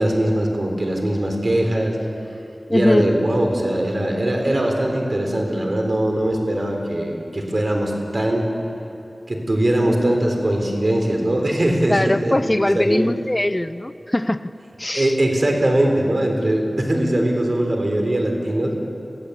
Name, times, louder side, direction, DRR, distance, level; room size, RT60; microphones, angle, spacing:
voice 1, 0.0-2.0 2.7-8.5 9.3-13.1 14.9-18.7, right 1 dB, 55° right, 2 dB, 3.9 m, -21 dB
voice 2, 2.7-3.1 11.9-14.5 14.8-15.2, left 1 dB, 25° left, 13 dB, 0.5 m, -20 dB
23.0 x 15.0 x 8.2 m, 2.8 s
wide cardioid pair, 40°, 0 cm